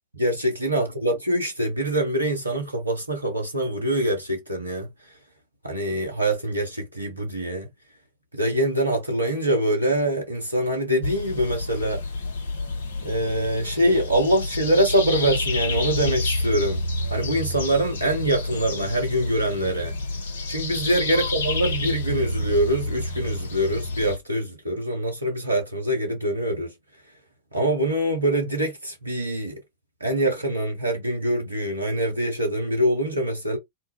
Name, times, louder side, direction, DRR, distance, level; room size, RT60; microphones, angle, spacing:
voice 1, 0.2-4.9 5.6-7.7 8.3-12.0 13.0-16.8 17.1-19.9 20.5-26.7 27.5-29.6 30.0-33.6, right 1 dB, 85° right, 0.6 m, -24 dB
sound 1, 11.0-24.2, left 2 dB, 65° left, 0.6 m, -29 dB
2.1 x 2.0 x 3.2 m
figure-of-eight pair, 90°, 0 cm